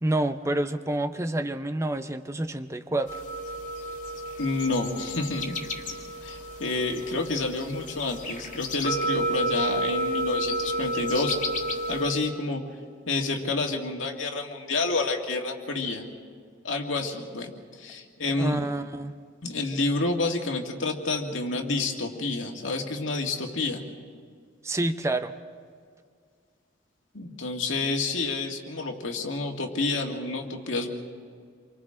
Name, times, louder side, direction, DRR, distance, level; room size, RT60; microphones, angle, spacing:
voice 1, 0.0-3.2 18.4-19.1 24.6-25.3, right 1 dB, 15° right, 8 dB, 0.6 m, -28 dB
sound 1, 3.1-12.1, right 1 dB, 40° left, 2.1 m, -31 dB
voice 2, 4.4-5.6 6.2-11.4 11.9-12.6 13.1-16.1 16.6-18.6 19.4-23.8 27.1-30.9, left 3 dB, 85° left, 1 dB, 2.1 m, -29 dB
28.5 x 24.0 x 3.8 m, 2.1 s
head